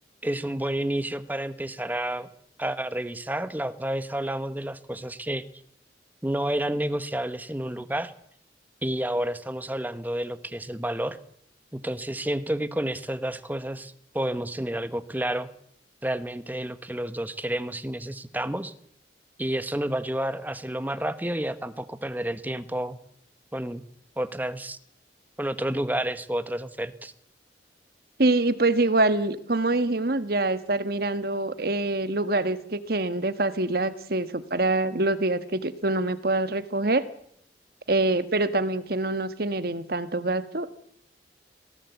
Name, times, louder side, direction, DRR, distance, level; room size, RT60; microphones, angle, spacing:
voice 1, 0.2-2.3 2.6-5.4 6.2-8.1 8.8-11.2 11.7-15.5 16.0-18.7 19.4-23.0 23.5-23.8 24.2-24.8 25.4-27.1, right 1 dB, 10° right, 12 dB, 1.1 m, -30 dB
voice 2, 28.2-37.0 37.9-40.7, right 2 dB, 55° right, 13 dB, 1.4 m, -25 dB
21.5 x 18.0 x 8.3 m, 0.67 s
head